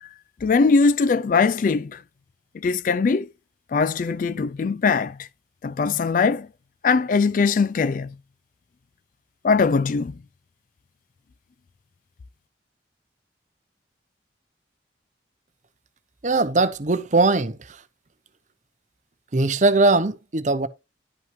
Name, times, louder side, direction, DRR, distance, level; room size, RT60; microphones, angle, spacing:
voice 1, 0.4-2.0 2.5-3.3 3.7-5.3 5.6-6.5 6.8-8.1 9.4-10.2, left 4 dB, 45° left, 0.3 m, -21 dB
voice 2, 16.2-17.8 19.3-20.7, right 3 dB, 40° right, 0.7 m, -20 dB
11.0 x 5.6 x 3.2 m
head